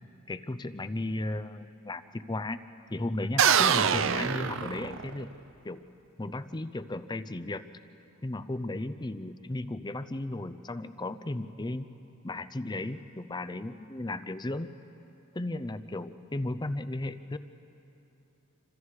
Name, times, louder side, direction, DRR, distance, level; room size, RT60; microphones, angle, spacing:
voice 1, 0.3-2.6 2.9-5.3 5.6-5.8 6.2-7.7 8.2-11.9 12.2-14.7 15.3-17.4, left 2 dB, 20° left, 13 dB, 0.6 m, -35 dB
sound 1, 3.4-5.3, right 7 dB, 65° right, 0.6 m, -25 dB
28.0 x 25.5 x 4.8 m, 3.0 s
head